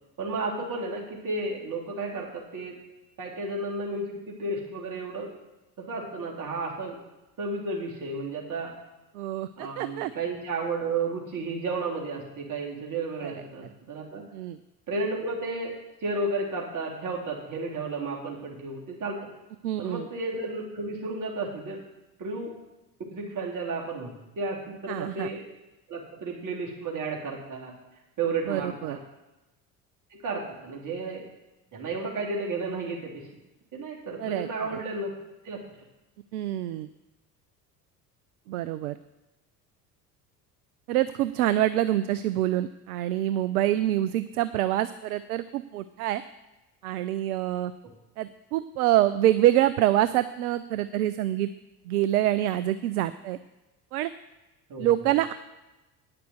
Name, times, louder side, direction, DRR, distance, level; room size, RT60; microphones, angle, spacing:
voice 1, 0.2-2.8 3.2-5.3 5.8-7.0 7.4-8.7 9.6-14.3 14.9-15.7 16.0-19.3 19.8-21.8 22.2-22.5 23.1-25.4 25.9-27.7 28.2-29.0 30.1-31.2 31.7-33.2 33.7-35.1 35.4-35.6 54.7-55.0, right 3 dB, 40° right, -2 dB, 3.4 m, -32 dB
voice 2, 9.1-10.1 13.2-13.3 14.3-14.6 19.6-20.1 24.9-25.3 28.5-29.0 34.2-34.5 34.7-34.8 36.3-36.9 38.5-39.0 40.9-46.2 46.8-47.7 48.2-51.5 51.9-53.4 53.9-54.1 54.8-55.3, right 13 dB, 70° right, 13 dB, 0.6 m, -26 dB
9.6 x 6.7 x 8.0 m, 1.0 s
figure-of-eight pair, 60°, 47 cm